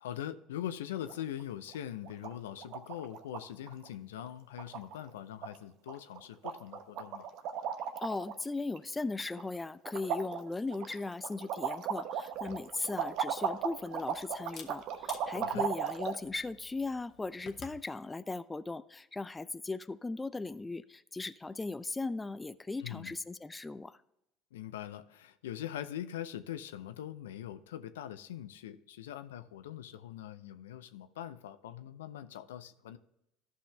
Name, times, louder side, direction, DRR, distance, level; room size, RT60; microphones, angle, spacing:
voice 1, 0.0-7.3 15.3-15.7 22.8-23.2 24.5-33.0, left 11 dB, 80° left, 11 dB, 0.5 m, -42 dB
sound 1, 1.0-1.4 1.7-1.8 2.0-2.3 2.6-3.4 3.7-3.9 4.2-4.3 4.6-5.1 5.4-5.6 5.9-6.2 6.4-8.4 8.8-9.6 9.8-16.2, right 8 dB, 60° right, 0.9 m, -36 dB
voice 2, 8.0-24.0, left 3 dB, 15° left, 15 dB, 0.4 m, -38 dB
Camera, 12.3-17.8, left 6 dB, 50° left, 1.2 m, -54 dB
14.0 x 5.6 x 3.3 m, 0.84 s
hypercardioid pair, 70°, 0 cm